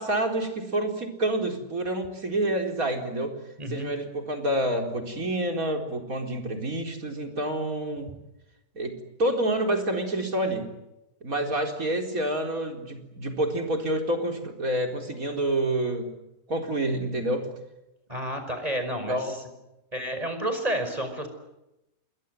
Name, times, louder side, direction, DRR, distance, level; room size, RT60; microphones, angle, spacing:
voice 1, 0.0-3.4 3.7-8.2 8.7-10.7 11.2-16.1 16.5-17.5 19.1-19.4, right 1 dB, 65° right, 3 dB, 4.6 m, -28 dB
voice 2, 3.6-3.9 18.1-19.4 19.9-21.3, right 1 dB, 25° right, 6 dB, 5.7 m, -30 dB
29.0 x 21.0 x 9.5 m, 0.93 s
omnidirectional pair, 1.6 m